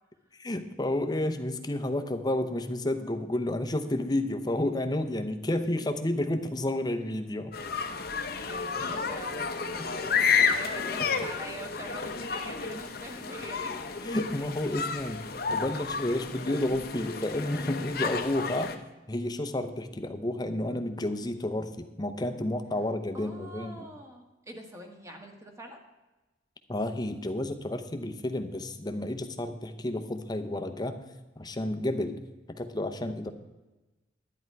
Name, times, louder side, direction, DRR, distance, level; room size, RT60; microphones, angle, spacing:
voice 1, 0.4-7.5 9.8-9.9 14.0-18.8 19.1-23.9 26.7-31.0 31.4-32.2 32.5-33.3, left 1 dB, 20° left, 7 dB, 0.7 m, -31 dB
sound 1, 7.5-18.7, left 5 dB, 55° left, 0.8 m, -31 dB
voice 2, 8.4-13.8 23.1-25.8, equal, 15° right, 2 dB, 1.5 m, -44 dB
11.5 x 9.7 x 4.6 m, 1.1 s
head